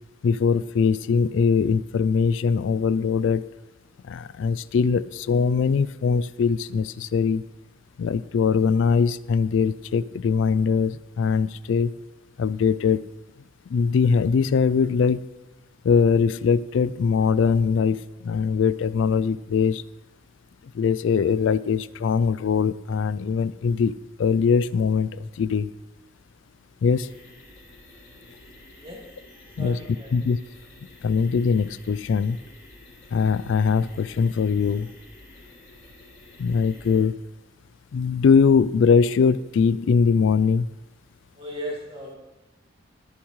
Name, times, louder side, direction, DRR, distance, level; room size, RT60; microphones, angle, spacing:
voice 1, 0.2-3.5 4.0-7.4 8.0-11.9 12.4-13.0 13.7-15.3 15.8-19.8 20.7-23.9 24.2-25.7 26.8-27.1 29.6-29.8 30.1-30.4 31.0-32.4 33.1-34.9 36.4-37.2 37.9-40.7, left 5 dB, 70° left, 17 dB, 0.3 m, -21 dB
sound 1, 27.0-37.0, left 1 dB, 45° left, 3.3 m, -50 dB
voice 2, 28.8-29.1 29.6-30.2 36.9-37.0 41.3-42.2, equal, 30° right, -1 dB, 2.3 m, -36 dB
21.0 x 7.2 x 3.1 m, 1.1 s
head